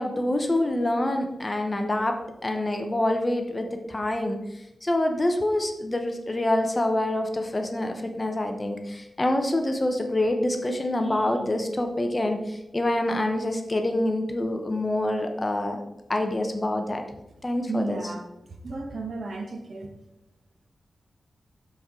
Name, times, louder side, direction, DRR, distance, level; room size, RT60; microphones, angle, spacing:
voice 1, 0.0-4.4 4.8-15.8 16.1-17.0 17.4-18.0, left 1 dB, 20° left, 0.7 m, -26 dB
voice 2, 17.7-18.3 18.6-19.9, right 3 dB, 50° right, 1.0 m, -33 dB
12.0 x 4.6 x 3.6 m
wide cardioid pair, 170°, 0 cm